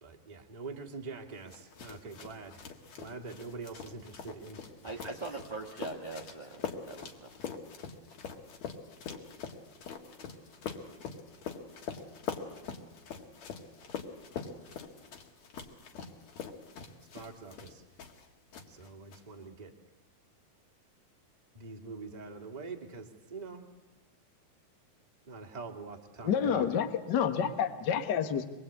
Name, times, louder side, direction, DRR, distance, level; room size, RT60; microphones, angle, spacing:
voice 1, 0.0-2.7 3.0-5.1 17.1-17.8 18.7-19.7 21.5-23.7 25.3-26.7, right 4 dB, 20° right, 2 dB, 1.0 m, -44 dB
sound 1, 1.5-18.3 18.5-19.2, left 6 dB, 55° left, 2.7 m, -43 dB
voice 2, 4.8-7.3, right 3 dB, 40° right, 0 dB, 0.6 m, -41 dB
voice 3, 26.2-28.4, left 8 dB, 80° left, 8 dB, 0.9 m, -29 dB
25.0 x 21.5 x 8.4 m, 1.0 s
omnidirectional pair, 4.1 m